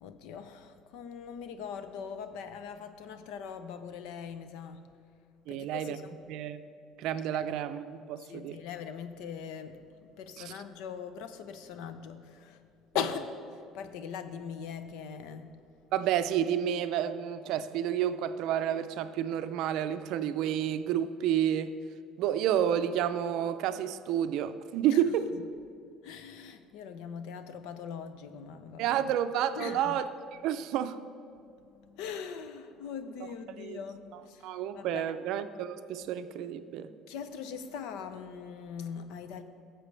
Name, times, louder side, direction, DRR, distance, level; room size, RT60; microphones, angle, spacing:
voice 1, 0.0-4.8 5.5-6.2 7.3-7.4 8.3-12.6 12.9-13.4 13.7-15.5 24.8-25.0 26.0-29.1 29.6-30.0 31.6-35.1 37.1-39.4, left 7 dB, 80° left, 10 dB, 0.7 m, -41 dB
voice 2, 5.5-6.0 6.3-6.6 7.0-8.6 10.4-10.5 15.9-21.7 22.2-25.3 28.8-30.1 30.4-31.0 33.6-33.8 34.4-36.9, right 10 dB, 60° right, 11 dB, 0.5 m, -30 dB
17.5 x 7.5 x 3.3 m, 2.4 s
cardioid pair, 165°, 0 cm